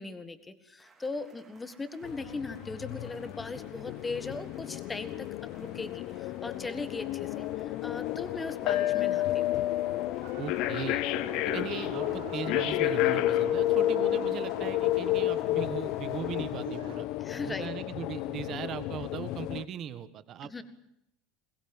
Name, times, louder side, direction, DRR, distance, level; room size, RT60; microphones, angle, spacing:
voice 1, 0.0-5.3 5.6-9.5 17.2-17.7 20.4-20.6, left 3 dB, 10° left, 11 dB, 1.8 m, -39 dB
sound 1, 0.8-16.8, right 4 dB, 15° right, 3.3 m, -60 dB
sound 2, 2.0-19.7, left 15 dB, 50° left, 0.9 m, -31 dB
sound 3, 10.2-17.0, right 15 dB, 80° right, 1.8 m, -45 dB
voice 2, 10.4-11.0 11.4-17.1 17.4-20.6, right 9 dB, 35° right, 13 dB, 1.6 m, -39 dB
21.5 x 21.0 x 9.0 m, 0.78 s
cardioid pair, 165°, 0 cm